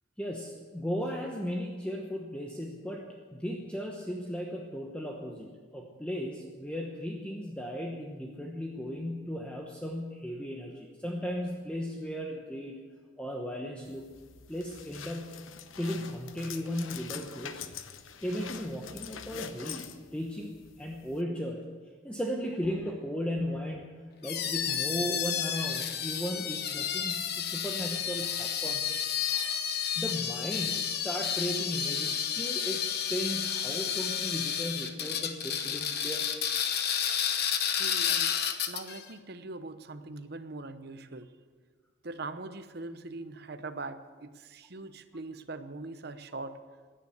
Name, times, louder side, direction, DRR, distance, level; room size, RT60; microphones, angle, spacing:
voice 1, 0.2-12.8 13.2-14.0 14.5-15.4 15.8-17.7 18.2-21.6 22.0-28.9 29.3-29.6 29.9-36.3, equal, 5° left, 0 dB, 1.0 m, -36 dB
sound 1, 13.9-21.2, left 7 dB, 80° left, 0.9 m, -45 dB
sound 2, 24.2-39.0, left 8 dB, 50° left, 1.0 m, -31 dB
voice 2, 37.7-38.4 38.7-41.3 42.0-46.6, right 3 dB, 50° right, 11 dB, 0.9 m, -42 dB
16.5 x 10.0 x 8.1 m, 1.5 s
head